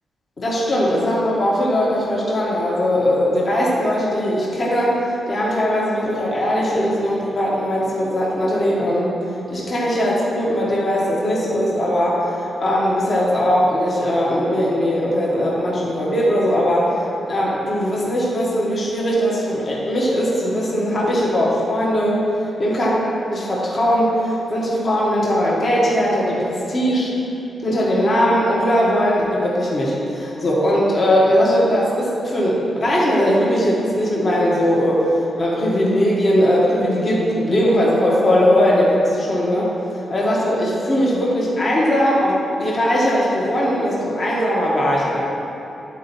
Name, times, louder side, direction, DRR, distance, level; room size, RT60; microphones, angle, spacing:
voice 1, 0.4-9.1 9.5-22.2 22.6-22.9 23.3-27.1 27.6-39.7 40.1-45.2, equal, 35° left, -5 dB, 1.4 m, -19 dB
10.0 x 4.4 x 4.1 m, 2.9 s
wide cardioid pair, 140°, 0 cm